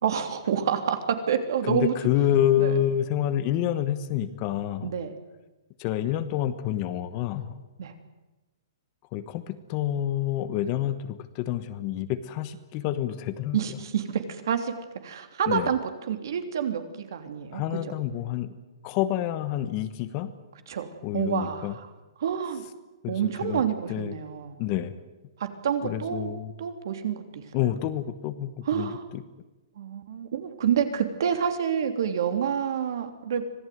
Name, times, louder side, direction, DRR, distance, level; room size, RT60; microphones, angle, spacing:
voice 1, 0.0-1.9 2.6-2.7 4.8-5.1 7.8-7.9 13.5-14.7 15.0-15.8 16.1-17.9 20.7-21.9 22.2-22.6 23.1-24.6 25.4-26.3 26.6-27.4 28.6-29.0 29.8-33.5, right 8 dB, 55° right, 7 dB, 3.2 m, -28 dB
voice 2, 1.6-4.9 5.8-7.6 9.1-13.6 15.5-15.7 17.5-18.5 18.8-20.3 21.0-21.8 23.0-23.6 23.9-24.1 24.6-24.9 25.8-26.5 27.5-29.2, left 11 dB, 25° left, 12 dB, 1.2 m, -28 dB
25.5 x 18.0 x 9.5 m, 1.1 s
hypercardioid pair, 170°, 2 cm